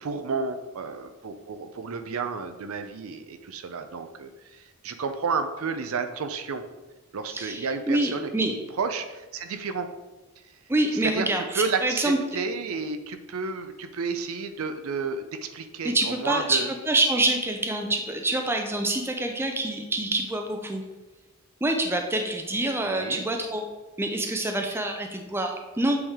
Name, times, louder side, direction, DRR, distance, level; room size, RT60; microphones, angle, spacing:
voice 1, 0.0-6.6 7.1-9.9 11.0-16.7 22.8-23.2, right 4 dB, 75° right, 8 dB, 0.5 m, -31 dB
voice 2, 7.3-8.5 10.7-12.2 15.8-20.8 21.6-23.6 24.0-26.0, right 2 dB, 10° right, 3 dB, 0.4 m, -26 dB
7.8 x 3.4 x 3.6 m, 1.1 s
head